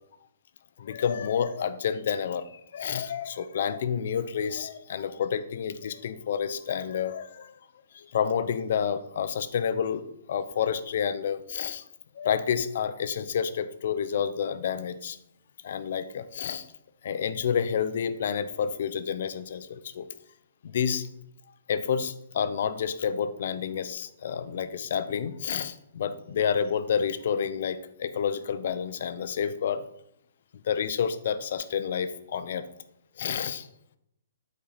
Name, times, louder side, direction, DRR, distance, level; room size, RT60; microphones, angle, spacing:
voice 1, 0.8-7.5 7.9-11.8 12.1-15.2 15.6-16.7 17.0-20.1 20.6-21.1 21.7-29.9 30.6-32.7 33.2-33.7, left 7 dB, 60° left, 12 dB, 0.6 m, -29 dB
8.5 x 4.3 x 4.1 m, 0.78 s
hypercardioid pair, 140°, 0 cm